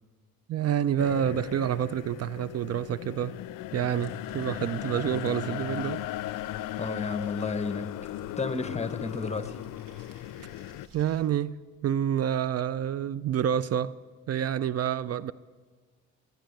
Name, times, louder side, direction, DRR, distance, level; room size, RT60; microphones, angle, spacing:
voice 1, 0.5-3.4 3.7-6.0 10.9-14.0 14.3-15.3, right 10 dB, 50° right, 0.5 m, -28 dB
sound 1, 1.0-10.9, left 15 dB, 70° left, 0.5 m, -37 dB
sound 2, 3.9-11.2, right 2 dB, 80° right, 3.0 m, -55 dB
voice 2, 6.8-7.9 8.4-9.6, left 4 dB, 20° left, 0.9 m, -32 dB
19.5 x 9.3 x 7.9 m
supercardioid pair, 70°, 33 cm